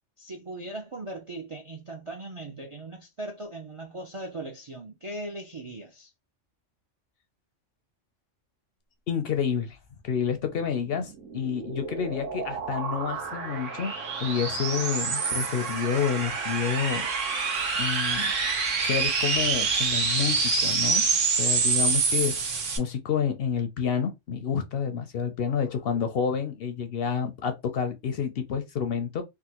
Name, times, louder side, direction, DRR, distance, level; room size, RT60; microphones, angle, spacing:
voice 1, 0.2-6.1, right 2 dB, 50° right, 0.4 m, -39 dB
voice 2, 9.1-9.8 10.0-13.9 14.2-17.1 17.8-18.3 18.8-21.0 21.4-22.4 22.8-29.2, left 7 dB, 65° left, 0.7 m, -29 dB
sound 1, 11.0-22.8, right 4 dB, 85° right, 1.3 m, -27 dB
3.5 x 2.2 x 2.8 m
omnidirectional pair, 1.3 m